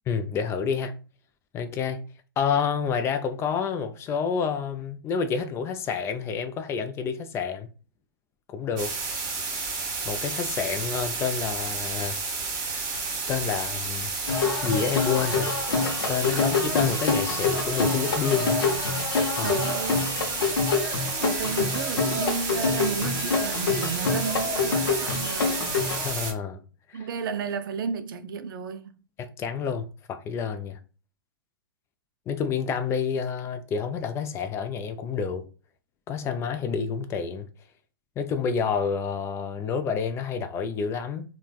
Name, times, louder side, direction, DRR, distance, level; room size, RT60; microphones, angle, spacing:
voice 1, 0.1-0.9 1.5-2.0 2.4-7.7 8.5-9.0 10.0-12.2 13.3-14.1 14.6-15.5 16.1-18.6 19.4-19.5 26.0-26.6 26.9-27.1 29.2-30.8 32.3-35.4 36.1-37.5 38.2-41.2, left 6 dB, 20° left, 0.3 m, -29 dB
sound 1, 8.8-26.3, right 4 dB, 40° right, 1.3 m, -31 dB
sound 2, 14.3-26.1, left 4 dB, 75° left, 0.6 m, -27 dB
voice 2, 19.4-20.1 21.2-25.7 26.9-28.9, right 6 dB, 65° right, 0.4 m, -32 dB
3.2 x 2.2 x 2.3 m
hypercardioid pair, 120°, 12 cm